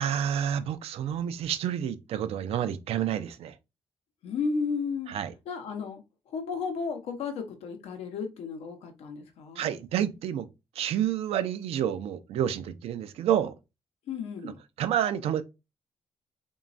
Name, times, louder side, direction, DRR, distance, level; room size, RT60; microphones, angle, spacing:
voice 1, 0.0-3.5 5.1-5.3 9.6-10.5 10.8-13.5 14.4-14.5 14.8-15.4, right 10 dB, 75° right, 0.4 m, -29 dB
voice 2, 4.2-5.1 5.5-9.7 14.1-14.6, left 5 dB, 80° left, 0.6 m, -33 dB
3.0 x 2.2 x 2.4 m
supercardioid pair, 60°, 10 cm